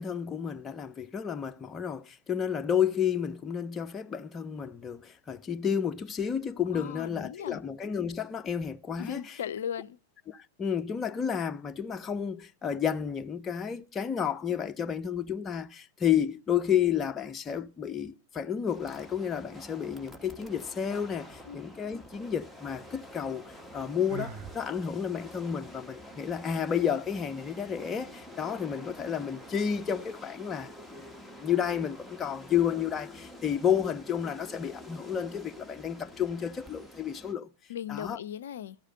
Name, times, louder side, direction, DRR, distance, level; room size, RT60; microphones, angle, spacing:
voice 1, 0.0-9.4 10.3-31.1 31.4-37.5 37.9-38.2, left 8 dB, 20° left, 0.7 m, -31 dB
voice 2, 6.7-7.6 9.0-10.0 21.5-21.6 37.7-38.8, left 9 dB, 60° left, 0.5 m, -37 dB
sound 1, 18.7-37.3, left 1 dB, 5° right, 1.4 m, -48 dB
Sigh, 24.1-24.6, right 8 dB, 40° right, 0.7 m, -39 dB
12.5 x 4.9 x 8.4 m
figure-of-eight pair, 90°, 0 cm